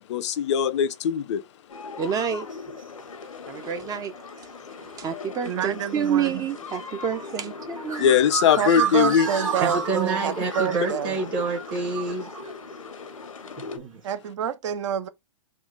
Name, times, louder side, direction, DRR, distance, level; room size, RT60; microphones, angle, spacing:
voice 1, 0.1-1.4 8.0-9.3, left 8 dB, 60° left, 0.5 m, -20 dB
sound 1, 1.7-13.8, left 4 dB, 90° left, 0.8 m, -39 dB
voice 2, 2.0-2.5 3.5-4.5 4.8-8.1, right 8 dB, 20° right, 0.4 m, -29 dB
sound 2, 2.3-2.5 4.0-4.1 4.9-5.1 5.8-5.9 6.8-12.5, right 4 dB, 85° right, 1.9 m, -31 dB
voice 3, 5.4-6.3 8.6-11.2 14.0-15.1, right 9 dB, 65° right, 0.6 m, -28 dB
voice 4, 9.6-12.3 13.7-14.0, right 4 dB, 40° right, 1.3 m, -28 dB
3.7 x 2.4 x 3.8 m
hypercardioid pair, 115°, 17 cm